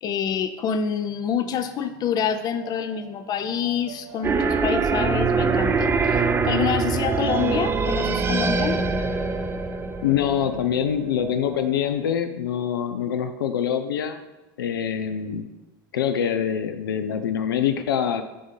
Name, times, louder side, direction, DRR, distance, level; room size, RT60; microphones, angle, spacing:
voice 1, 0.0-8.8, left 7 dB, 35° left, 10 dB, 0.5 m, -27 dB
sound 1, 1.0-11.8, right 4 dB, 55° right, 1.4 m, -46 dB
sound 2, 4.2-11.0, right 4 dB, 20° right, 0.5 m, -23 dB
voice 2, 10.0-14.2 14.6-15.5 15.9-18.2, left 8 dB, 90° left, 9 dB, 0.4 m, -25 dB
6.6 x 2.7 x 5.2 m, 1.0 s
hypercardioid pair, 100°, 11 cm